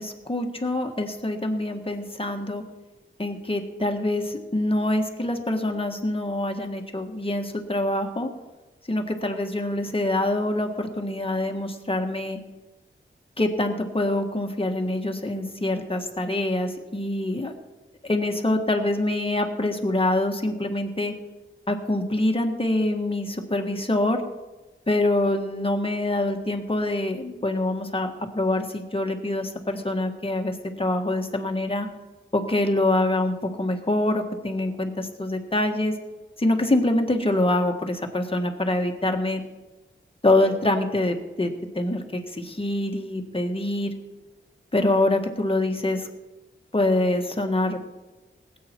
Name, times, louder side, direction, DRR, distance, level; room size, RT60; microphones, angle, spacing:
voice 1, 0.0-2.6 3.2-8.3 8.9-12.4 13.4-17.5 18.0-21.1 21.7-24.2 24.9-31.9 32.3-35.9 36.4-39.4 40.2-43.9 44.7-46.1 46.7-47.8, left 1 dB, 25° left, 3 dB, 1.7 m, -25 dB
19.0 x 8.7 x 4.6 m, 1.2 s
wide cardioid pair, 90°, 21 cm